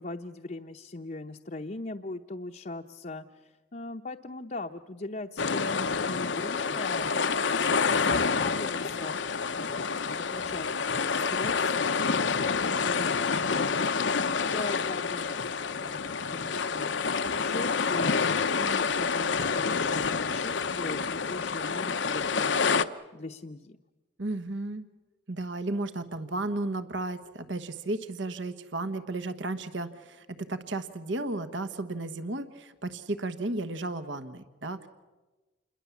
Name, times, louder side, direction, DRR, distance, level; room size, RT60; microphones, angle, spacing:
voice 1, 0.0-7.2 7.6-11.8 12.1-18.2 18.6-23.8, left 2 dB, 40° left, 3 dB, 0.8 m, -40 dB
sound 1, 5.4-22.8, left 5 dB, 70° left, 0.8 m, -28 dB
voice 2, 24.2-24.8 25.3-34.9, right 2 dB, 70° right, 11 dB, 1.3 m, -34 dB
28.0 x 22.0 x 7.2 m, 1.2 s
head